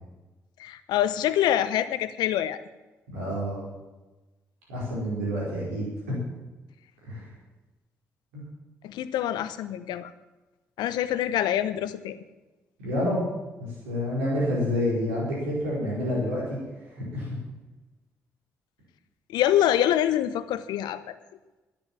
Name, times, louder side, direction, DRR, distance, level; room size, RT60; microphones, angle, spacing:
voice 1, 0.6-2.6 8.8-10.1 10.8-12.2 19.3-21.2, left 11 dB, 70° left, 13 dB, 0.8 m, -25 dB
voice 2, 3.1-3.6 4.7-6.2 7.0-7.3 8.3-8.4 12.8-13.3 13.6-16.6 16.9-17.3, left 1 dB, 85° right, -6 dB, 4.8 m, -28 dB
10.5 x 10.0 x 9.0 m, 1.1 s
hypercardioid pair, 40°, 8 cm